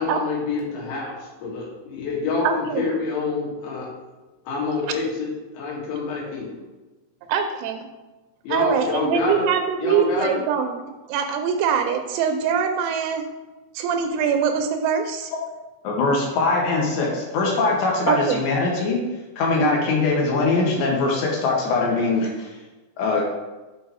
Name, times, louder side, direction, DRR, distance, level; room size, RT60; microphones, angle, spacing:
voice 1, 0.0-3.9 4.5-6.5 8.4-9.5 9.8-10.4, left 3 dB, 85° left, -4 dB, 4.2 m, -27 dB
voice 2, 2.4-2.8 7.3-7.9 8.5-13.3 13.7-15.3 18.1-18.4 19.6-19.8, right 7 dB, 85° right, 5 dB, 3.0 m, -23 dB
voice 3, 15.8-19.0 19.4-22.5 23.0-23.3, left 3 dB, 70° left, -2 dB, 3.4 m, -22 dB
8.1 x 4.5 x 4.7 m, 1.1 s
omnidirectional pair, 5.7 m